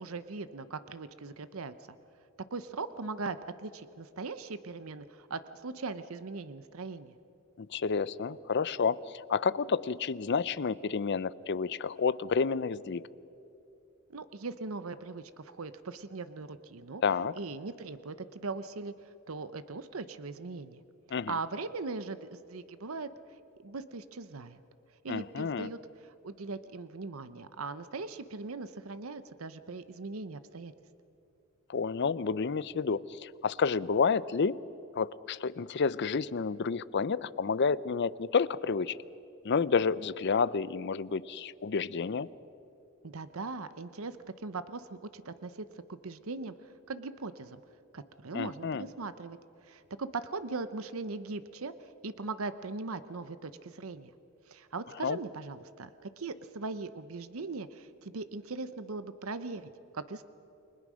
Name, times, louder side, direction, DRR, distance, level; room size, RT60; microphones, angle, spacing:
voice 1, 0.0-1.7 2.5-7.1 14.1-17.0 17.4-20.8 21.1-23.1 23.6-24.6 25.0-30.7 43.0-46.5 46.9-47.6 47.9-49.4 49.6-54.1 54.5-60.2, right 3 dB, 80° right, 12 dB, 0.8 m, -40 dB
voice 2, 7.6-13.0 17.0-17.3 21.1-21.3 25.1-25.7 31.7-34.6 35.0-39.0 39.4-42.3 48.3-48.9 55.0-55.2, left 5 dB, 55° left, 18 dB, 0.5 m, -30 dB
29.5 x 21.0 x 6.3 m, 2.8 s
head